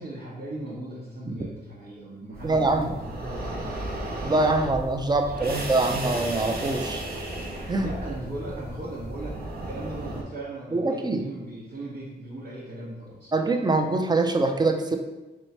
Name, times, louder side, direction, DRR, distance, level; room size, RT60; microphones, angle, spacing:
voice 1, 0.0-4.0 5.2-5.7 7.8-13.3, right 1 dB, 80° right, -10 dB, 1.2 m, -38 dB
sound 1, 2.3-10.2, right 1 dB, 65° right, 0.9 m, -34 dB
voice 2, 2.4-2.9 4.2-7.0 7.7-7.9 10.7-11.2 13.3-15.0, right 2 dB, 25° right, 5 dB, 0.5 m, -24 dB
3.2 x 3.0 x 4.2 m, 1.1 s
cardioid pair, 75°, 17 cm